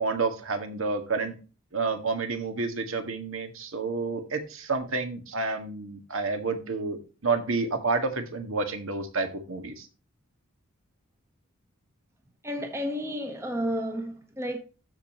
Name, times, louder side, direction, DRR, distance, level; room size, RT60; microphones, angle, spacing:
voice 1, 0.0-1.3 1.7-9.9, right 3 dB, 65° right, 1.9 m, -29 dB
voice 2, 12.4-14.6, equal, 10° right, 1.1 m, -31 dB
13.0 x 5.2 x 3.0 m
head